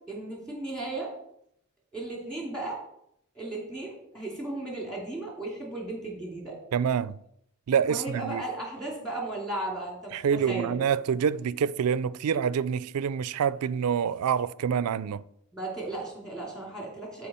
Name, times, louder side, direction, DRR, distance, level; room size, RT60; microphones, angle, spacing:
voice 1, 0.1-1.1 1.9-2.8 3.3-6.5 7.9-10.8 15.5-17.3, right 2 dB, 5° left, 2.8 m, -35 dB
voice 2, 6.7-7.2 7.7-8.4 10.1-15.2, right 7 dB, 80° right, 0.4 m, -26 dB
12.0 x 4.7 x 4.3 m
head